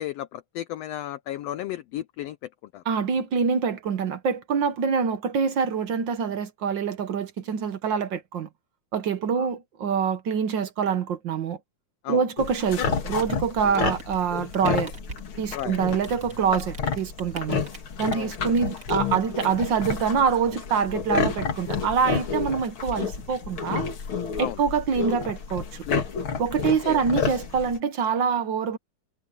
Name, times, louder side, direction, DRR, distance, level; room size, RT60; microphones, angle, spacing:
voice 1, 0.0-2.8 9.3-9.5 12.0-12.2 15.5-15.8 18.1-18.4 24.4-24.6 25.9-26.4 26.6-27.0, left 13 dB, 85° left, 1.4 m, -34 dB
voice 2, 2.9-8.5 8.9-11.6 12.1-14.9 15.4-17.6 18.0-23.8 24.4-25.8 26.4-28.8, right 6 dB, 60° right, 1.3 m, -25 dB
sound 1, 12.4-27.8, left 5 dB, 45° left, 2.5 m, -30 dB
Rain, 13.7-20.4, right 3 dB, 30° right, 2.6 m, -45 dB
omnidirectional pair, 3.5 m